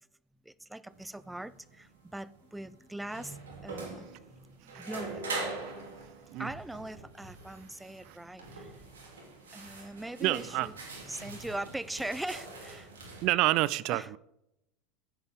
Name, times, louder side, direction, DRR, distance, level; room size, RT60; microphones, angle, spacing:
voice 1, 0.4-3.4 3.6-4.1 4.3-5.2 6.4-8.7 9.5-10.7 11.1-12.9 13.9-14.1, right 1 dB, 5° right, 0.5 m, -41 dB
sound 1, 0.9-13.2, right 3 dB, 90° right, 2.9 m, -43 dB
voice 2, 10.2-10.7 13.2-14.2, right 17 dB, 60° right, 0.4 m, -28 dB
15.5 x 7.8 x 3.6 m
hypercardioid pair, 85°, 0 cm